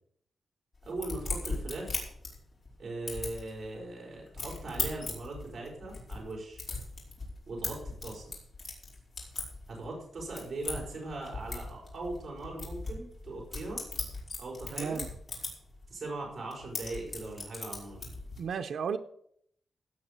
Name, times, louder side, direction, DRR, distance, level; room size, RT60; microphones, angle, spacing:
sound 1, 0.8-2.7 3.1-3.7 4.2-9.9 10.2-15.9 16.2-18.4, left 3 dB, 45° left, 5.5 m, -39 dB
voice 1, 0.8-2.0 2.8-6.6 7.5-8.2 9.7-13.8 14.4-15.0 15.9-18.1, right 2 dB, 45° right, -2 dB, 5.5 m, -40 dB
voice 2, 14.7-15.1 18.4-19.0, right 6 dB, 90° right, 7 dB, 0.7 m, -33 dB
17.0 x 6.2 x 6.8 m, 0.68 s
wide cardioid pair, 145°, 0 cm